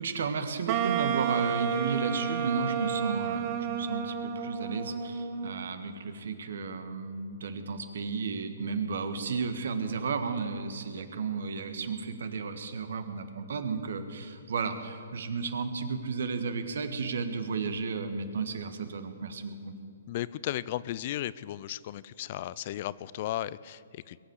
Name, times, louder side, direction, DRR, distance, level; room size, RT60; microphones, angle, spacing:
voice 1, 0.0-19.7, right 5 dB, 65° right, 9 dB, 1.5 m, -33 dB
Wind instrument woodwind instrument, 0.7-5.7, right 7 dB, 35° right, 1.1 m, -31 dB
voice 2, 20.1-24.2, left 13 dB, 45° left, 19 dB, 0.4 m, -35 dB
21.5 x 7.9 x 8.2 m, 2.3 s
hypercardioid pair, 130°, 0 cm